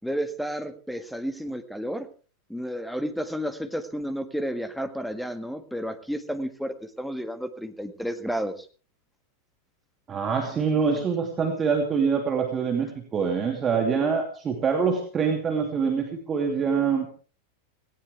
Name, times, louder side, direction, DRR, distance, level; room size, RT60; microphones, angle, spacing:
voice 1, 0.0-2.1 2.5-8.7, equal, ahead, 10 dB, 1.8 m, -31 dB
voice 2, 10.1-17.1, right 6 dB, 25° right, 3 dB, 2.8 m, -25 dB
18.0 x 18.0 x 3.5 m, 0.39 s
figure-of-eight pair, 90°, 0 cm